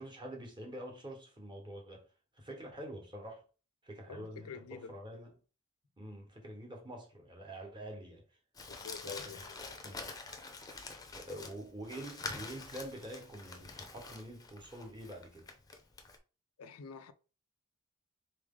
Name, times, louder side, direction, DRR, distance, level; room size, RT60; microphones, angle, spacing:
voice 1, 0.0-2.1 2.3-3.4 3.8-5.3 6.0-8.2 9.0-9.3 9.8-10.1 11.1-15.4, right 1 dB, 20° right, 1.2 m, -46 dB
voice 2, 4.1-4.9 8.7-9.5 11.3-11.5 16.6-17.1, left 6 dB, 90° left, 0.5 m, -48 dB
Crumpling crinkling, 8.6-16.2, left 3 dB, 15° left, 0.6 m, -46 dB
4.0 x 3.2 x 3.7 m
head